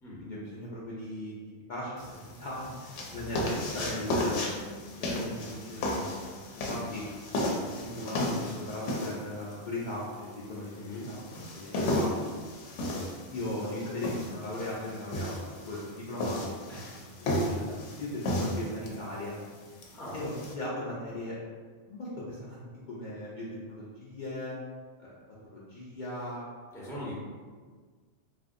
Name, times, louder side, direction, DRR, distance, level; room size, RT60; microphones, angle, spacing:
voice 1, 0.2-6.3 6.7-7.0 7.6-11.2 11.5-12.1 13.3-16.6 17.2-19.4 20.1-21.4 21.9-24.5 25.0-26.5, left 1 dB, 55° left, -8 dB, 0.6 m, -38 dB
sound 1, 2.0-20.5, left 1 dB, 80° left, 0.9 m, -34 dB
voice 2, 10.8-11.1 16.7-16.9 19.9-20.2 26.7-27.1, left 1 dB, 5° left, -7 dB, 0.5 m, -41 dB
3.3 x 2.6 x 2.5 m, 1.5 s
omnidirectional pair, 1.2 m